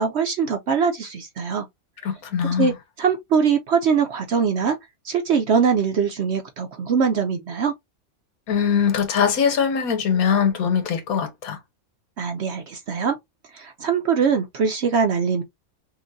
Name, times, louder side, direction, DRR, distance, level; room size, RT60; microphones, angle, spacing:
voice 1, 0.0-1.6 2.6-2.7 3.0-4.8 5.0-7.7 12.2-13.1 13.5-15.4, right 6 dB, 60° right, 0.8 m, -22 dB
voice 2, 2.0-2.7 8.5-11.6, left 7 dB, 90° left, 1.5 m, -22 dB
5.6 x 2.5 x 2.6 m
omnidirectional pair, 1.5 m